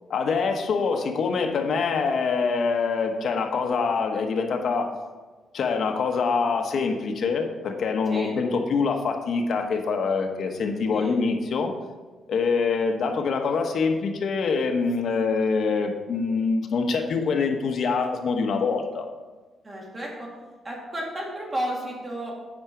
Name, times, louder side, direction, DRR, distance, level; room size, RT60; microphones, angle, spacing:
voice 1, 0.1-4.9 5.5-11.7 12.3-19.1, left 4 dB, 60° left, 4 dB, 1.1 m, -25 dB
voice 2, 19.6-20.3 20.6-22.3, right 1 dB, 25° right, -2 dB, 2.0 m, -32 dB
8.6 x 4.9 x 6.1 m, 1.3 s
cardioid pair, 130°, 0 cm